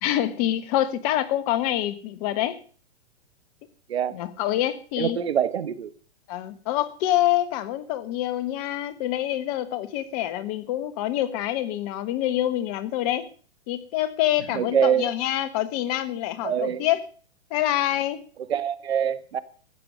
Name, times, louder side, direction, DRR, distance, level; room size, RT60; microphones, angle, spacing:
voice 1, 0.0-2.6 4.1-5.2 6.3-13.3 13.7-17.0 17.5-18.2, left 13 dB, 35° left, 13 dB, 1.3 m, -26 dB
voice 2, 5.0-5.9 14.5-15.1 16.4-16.8 18.5-19.4, right 8 dB, 70° right, 14 dB, 1.4 m, -24 dB
14.0 x 8.9 x 6.4 m, 0.40 s
hypercardioid pair, 130°, 33 cm